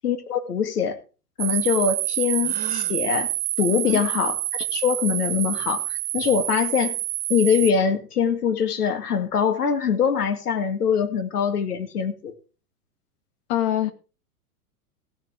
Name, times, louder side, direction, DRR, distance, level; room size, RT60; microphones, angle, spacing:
voice 1, 0.0-1.0 1.4-3.3 3.6-7.0 7.3-12.3, left 6 dB, 80° left, 2.2 m, -23 dB
sound 1, 1.4-7.7, right 16 dB, 40° right, 0.9 m, -27 dB
Gasp, 2.4-3.0, right 8 dB, 85° right, 1.4 m, -36 dB
voice 2, 3.7-4.0 13.5-13.9, left 12 dB, 45° left, 2.0 m, -24 dB
16.0 x 7.7 x 4.8 m
hypercardioid pair, 110°, 45 cm